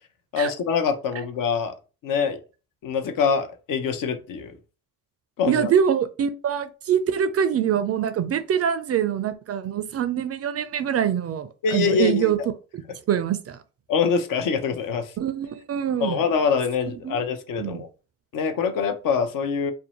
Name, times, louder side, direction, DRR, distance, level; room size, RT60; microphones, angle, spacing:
voice 1, 0.3-1.7 2.0-2.4 2.8-4.5 5.4-5.7 11.6-12.5 13.9-15.1 16.0-17.9 18.3-19.7, left 6 dB, 60° left, 0.6 m, -24 dB
voice 2, 5.5-12.4 12.7-12.8 13.1-13.6 15.2-16.2 17.0-17.2 17.6-17.8, right 8 dB, 40° right, 0.4 m, -24 dB
2.6 x 2.1 x 2.9 m
hypercardioid pair, 50°, 37 cm